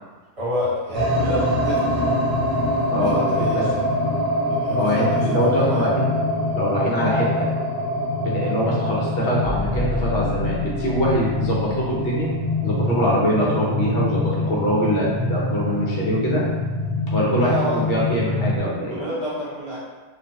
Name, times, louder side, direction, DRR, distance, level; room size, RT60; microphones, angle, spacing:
voice 1, 0.4-2.1 3.0-3.9 4.5-5.9 17.4-17.8 18.9-19.8, equal, 30° right, -11 dB, 1.0 m, -28 dB
sound 1, 0.9-18.6, left 1 dB, 55° right, 0.6 m, -24 dB
voice 2, 4.7-6.1 6.5-7.5 8.2-12.3 12.6-16.4 17.1-19.0, equal, 55° left, -5 dB, 0.8 m, -23 dB
sound 2, 9.4-14.0 15.8-15.9, left 2 dB, 80° left, 0.3 m, -33 dB
2.4 x 2.2 x 2.8 m, 1.3 s
omnidirectional pair, 1.3 m